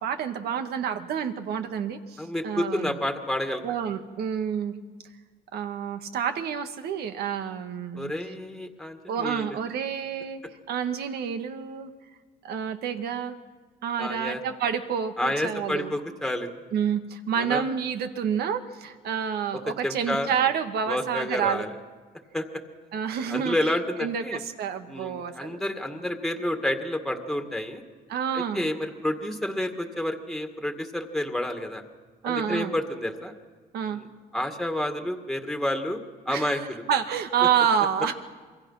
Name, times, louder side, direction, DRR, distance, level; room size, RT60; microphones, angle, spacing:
voice 1, 0.0-3.0 3.6-4.7 5.5-8.1 9.1-10.4 10.7-11.9 12.4-13.4 13.8-15.9 16.7-21.6 22.9-23.6 24.0-25.6 28.1-28.7 32.2-32.7 33.7-34.0 36.3-38.1, right 8 dB, 70° right, 7 dB, 1.9 m, -28 dB
voice 2, 2.2-3.6 8.0-9.6 14.0-14.4 15.2-16.5 17.4-17.7 19.8-20.3 20.9-21.8 22.3-22.4 23.3-24.4 24.9-27.8 28.3-31.8 32.2-33.3 33.9-34.0 34.3-36.0 36.3-36.8, left 1 dB, ahead, 5 dB, 2.1 m, -29 dB
27.5 x 23.0 x 5.8 m, 1.4 s
cardioid pair, 110°, 17 cm